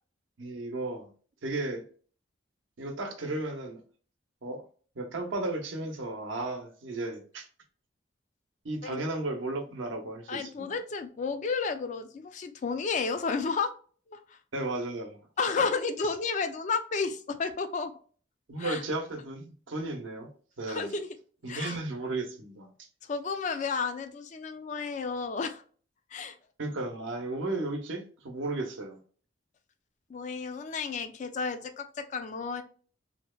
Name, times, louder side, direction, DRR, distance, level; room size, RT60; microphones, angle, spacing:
voice 1, 0.4-1.1 1.4-1.8 2.8-3.8 4.4-4.6 5.0-7.5 8.6-10.7 14.5-15.2 18.5-20.3 20.6-20.9 21.4-22.7 26.6-29.0, right 2 dB, 85° right, 0.7 m, -34 dB
voice 2, 10.3-13.7 14.1-14.4 15.4-17.9 18.6-18.8 20.7-21.2 21.5-21.8 23.1-25.6 26.1-26.3 30.1-32.6, left 4 dB, 40° left, 0.3 m, -32 dB
2.7 x 2.1 x 2.2 m
head